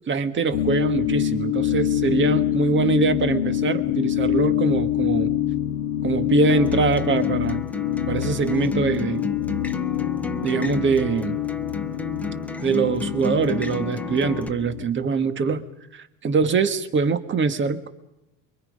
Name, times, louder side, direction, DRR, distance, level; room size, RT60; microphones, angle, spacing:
voice 1, 0.1-5.3 6.0-7.7 8.1-9.3 10.4-11.4 12.6-17.9, right 5 dB, 25° right, 9 dB, 1.6 m, -23 dB
sound 1, 0.5-14.9, left 12 dB, 90° left, 2.0 m, -25 dB
Acoustic guitar, 6.5-14.5, left 1 dB, 5° left, 0.9 m, -33 dB
28.5 x 23.0 x 5.4 m, 0.91 s
supercardioid pair, 125°, 42 cm